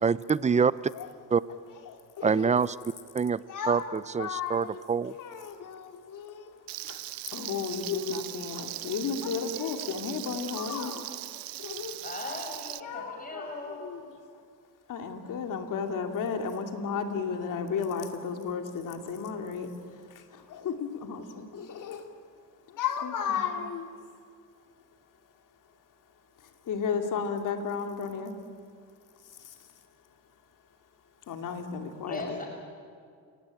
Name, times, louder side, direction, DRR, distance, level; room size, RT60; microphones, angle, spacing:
voice 1, 0.0-0.7 1.3-1.4 2.2-2.7 3.1-3.4 3.7-3.8 4.1-5.1, right 6 dB, 20° right, 18 dB, 0.6 m, -25 dB
voice 2, 1.7-2.5 3.5-3.9 4.2-4.8 5.2-12.0 12.8-14.2 14.9-22.1 22.7-24.0 24.6-24.7 26.4-28.4 29.2-29.9 31.2-32.4, left 6 dB, 60° left, 5 dB, 2.8 m, -34 dB
Frying (food), 6.7-12.8, right 18 dB, 80° right, 0.7 m, -39 dB
voice 3, 12.0-13.8 32.1-32.5, left 2 dB, 25° left, 1 dB, 5.7 m, -38 dB
29.5 x 18.0 x 9.0 m, 2.2 s
cardioid pair, 100°, 35 cm